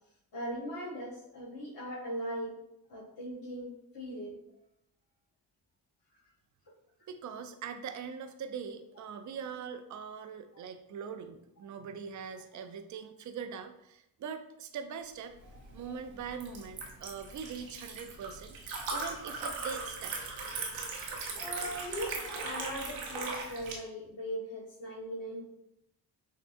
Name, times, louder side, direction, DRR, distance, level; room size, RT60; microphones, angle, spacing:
voice 1, 0.3-2.5 2.9-4.4 15.5-15.9 21.3-25.5, equal, 50° left, -7 dB, 1.4 m, -39 dB
voice 2, 7.1-15.3 15.7-18.6 18.9-20.2, right 6 dB, 40° right, 8 dB, 0.5 m, -42 dB
Liquid, 15.4-23.7, right 3 dB, 80° right, 1.0 m, -39 dB
6.4 x 2.2 x 2.6 m, 0.80 s
supercardioid pair, 60°, 44 cm